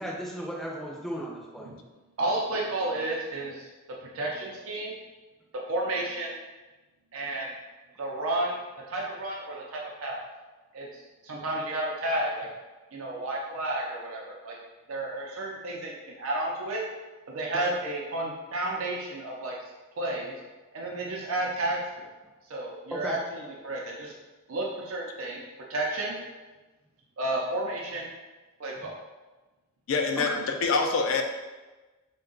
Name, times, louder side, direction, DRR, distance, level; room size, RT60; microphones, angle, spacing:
voice 1, 0.0-1.7 17.5-17.7 22.9-23.2 30.2-30.4, equal, ahead, -3 dB, 0.5 m, -35 dB
voice 2, 2.2-3.7 4.0-4.9 5.7-6.4 7.1-7.5 8.0-8.6 8.9-10.2 10.7-12.5 12.9-14.6 14.9-16.8 17.3-19.5 20.0-20.3 20.7-22.1 22.5-24.1 24.5-25.4 25.7-26.2 27.2-28.1 28.6-29.0, right 1 dB, 85° right, -3 dB, 0.6 m, -31 dB
voice 3, 29.9-31.2, left 4 dB, 70° left, 4 dB, 0.4 m, -25 dB
3.5 x 2.3 x 3.8 m, 1.2 s
head